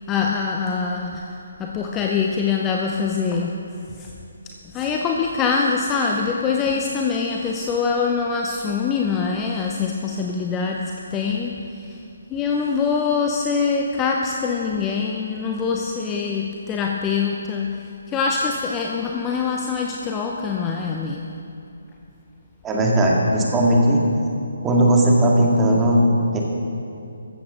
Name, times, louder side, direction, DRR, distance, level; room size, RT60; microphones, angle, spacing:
voice 1, 0.0-4.2 4.4-12.0 12.3-21.3, left 5 dB, 15° left, 1 dB, 0.7 m, -24 dB
voice 2, 22.6-24.0 24.6-26.4, right 1 dB, 10° right, -2 dB, 1.9 m, -17 dB
14.0 x 14.0 x 3.9 m, 2.6 s
figure-of-eight pair, 145°, 0 cm